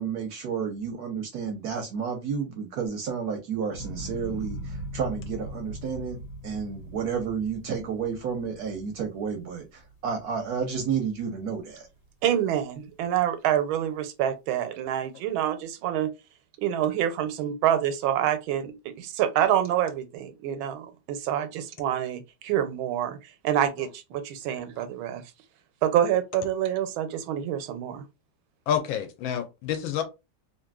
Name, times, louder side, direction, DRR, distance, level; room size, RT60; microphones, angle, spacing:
voice 1, 0.0-11.9, right 6 dB, 70° right, 0.9 m, -31 dB
sound 1, 3.7-10.0 10.5-11.1, equal, 65° left, 1.3 m, -39 dB
voice 2, 12.2-16.1 16.6-23.2 23.4-25.2 25.8-28.0, right 10 dB, 90° right, 1.4 m, -27 dB
voice 3, 28.7-30.0, left 9 dB, 85° left, 1.4 m, -28 dB
3.3 x 2.6 x 2.3 m
omnidirectional pair, 2.2 m